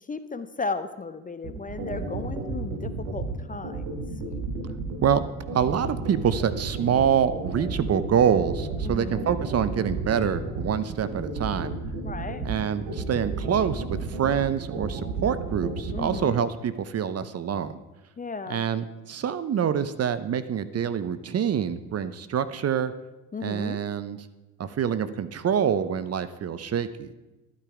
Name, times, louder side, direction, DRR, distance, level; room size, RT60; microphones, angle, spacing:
voice 1, 0.1-4.0 8.8-9.2 12.0-12.4 15.9-16.3 18.2-18.6 23.3-23.8, left 4 dB, 20° left, 11 dB, 0.6 m, -35 dB
sound 1, 1.4-16.2, right 4 dB, 80° right, 2.5 m, -32 dB
voice 2, 5.5-11.7 12.4-17.8 18.5-22.9 23.4-24.3 24.6-27.1, right 8 dB, 35° right, 14 dB, 0.7 m, -26 dB
12.0 x 9.2 x 4.9 m, 1.1 s
supercardioid pair, 80°, 43 cm